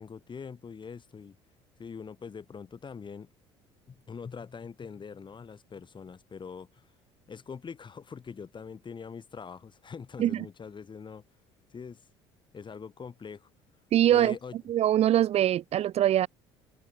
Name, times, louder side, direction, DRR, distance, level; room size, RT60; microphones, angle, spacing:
voice 1, 0.0-1.4 1.8-3.3 3.9-6.8 7.3-11.2 11.7-12.0 12.5-13.5 14.1-14.6, left 6 dB, 35° left, 7.0 m, -43 dB
voice 2, 13.9-14.3 14.7-16.3, right 12 dB, 50° right, 0.7 m, -23 dB
hypercardioid pair, 60°, 14 cm